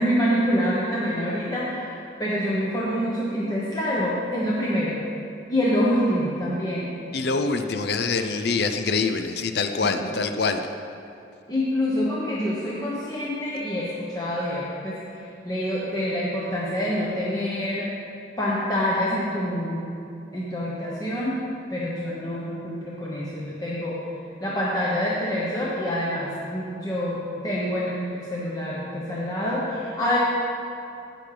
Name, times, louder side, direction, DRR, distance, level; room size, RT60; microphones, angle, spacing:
voice 1, 0.0-5.0 5.5-6.9 9.8-10.2 11.5-15.0 15.4-17.9 18.4-19.9 20.3-21.4 21.7-24.0 24.4-30.2, equal, 20° left, -7 dB, 1.0 m, -26 dB
voice 2, 7.1-10.6, left 4 dB, 60° left, 7 dB, 0.5 m, -25 dB
17.0 x 6.0 x 3.3 m, 2.6 s
head